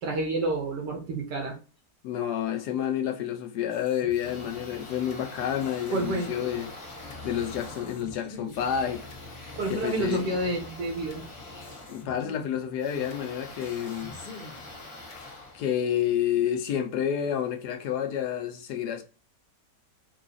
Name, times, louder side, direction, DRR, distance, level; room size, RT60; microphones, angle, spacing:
voice 1, 0.0-1.6 5.9-6.3 9.6-11.2, right 2 dB, 75° right, 2.0 m, -29 dB
voice 2, 2.0-6.7 7.2-9.1 9.7-10.2 11.9-14.2 15.2-19.0, left 9 dB, 70° left, 1.1 m, -29 dB
sound 1, 3.7-5.2 5.6-7.2 7.6-9.2 9.6-11.2 11.6-13.2 13.6-15.2, left 2 dB, 55° left, 1.4 m, -47 dB
sound 2, 4.1-16.3, left 2 dB, 40° left, 1.7 m, -44 dB
4.8 x 2.4 x 3.9 m
omnidirectional pair, 1.9 m